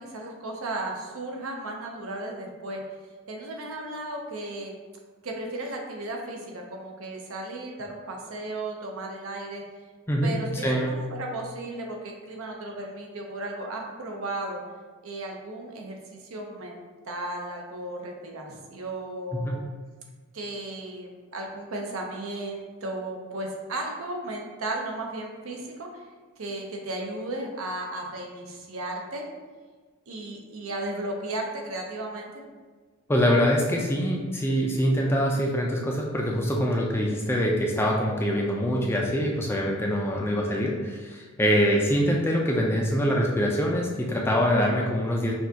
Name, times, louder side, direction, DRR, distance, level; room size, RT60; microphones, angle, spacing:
voice 1, 0.0-2.8 3.3-4.7 5.2-9.6 10.2-14.6 15.0-19.7 20.3-26.0 26.4-29.3 30.1-32.3, right 2 dB, 70° right, 0 dB, 0.7 m, -35 dB
voice 2, 10.1-11.0 33.1-45.3, equal, 10° left, -1 dB, 0.4 m, -24 dB
6.0 x 2.3 x 2.8 m, 1.4 s
head